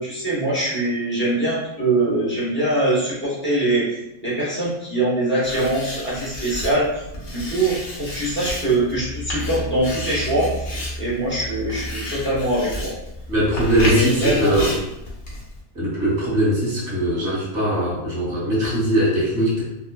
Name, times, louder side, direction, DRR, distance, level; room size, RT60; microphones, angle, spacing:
voice 1, 0.0-6.9 7.3-10.5 11.0-12.9 13.8-14.6, right 1 dB, 10° left, -7 dB, 0.6 m, -23 dB
Writing, 5.4-15.6, left 1 dB, 55° left, 0.7 m, -31 dB
voice 2, 13.3-14.8 15.7-19.6, equal, 30° right, -7 dB, 1.1 m, -21 dB
2.9 x 2.3 x 2.2 m, 0.86 s
omnidirectional pair, 1.7 m